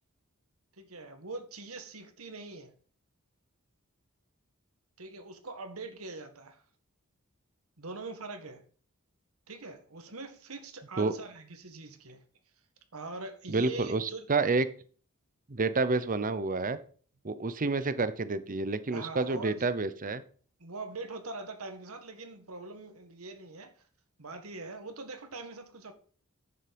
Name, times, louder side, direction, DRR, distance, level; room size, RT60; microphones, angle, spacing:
voice 1, 0.7-2.7 5.0-6.6 7.8-8.6 9.5-12.2 12.9-14.2 18.9-19.7 20.6-23.8 24.2-25.9, right 3 dB, 75° right, 1.7 m, -43 dB
voice 2, 13.5-14.7 15.5-16.8 17.2-20.2, right 3 dB, 40° right, 0.8 m, -29 dB
10.0 x 7.2 x 5.3 m
head